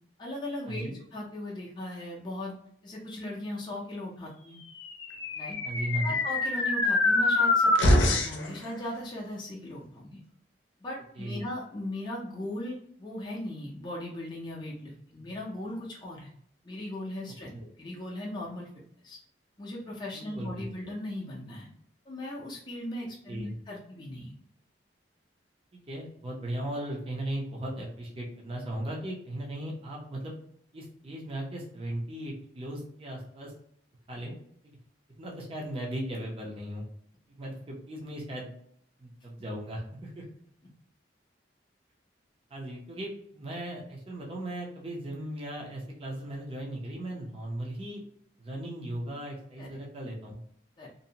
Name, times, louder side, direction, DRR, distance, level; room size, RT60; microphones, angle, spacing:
voice 1, 0.2-2.5 2.8-4.6 5.3-5.6 6.0-10.2 10.8-16.3 16.6-18.7 19.0-19.2 19.6-21.7 22.1-24.3 34.2-34.3 49.6-49.7 50.8-50.9, left 1 dB, 25° left, -4 dB, 0.4 m, -38 dB
sound 1, 4.9-8.5, left 2 dB, 90° left, 0.6 m, -24 dB
voice 2, 5.6-6.2 11.2-11.4 17.5-17.7 20.1-20.6 23.3-23.5 25.7-30.4 30.7-33.5 34.1-34.3 34.6-34.8 35.2-36.9 37.4-38.5 39.0-40.3 42.5-48.0 48.4-50.4, right 1 dB, 30° right, -3 dB, 0.5 m, -37 dB
2.6 x 2.0 x 2.7 m, 0.68 s
head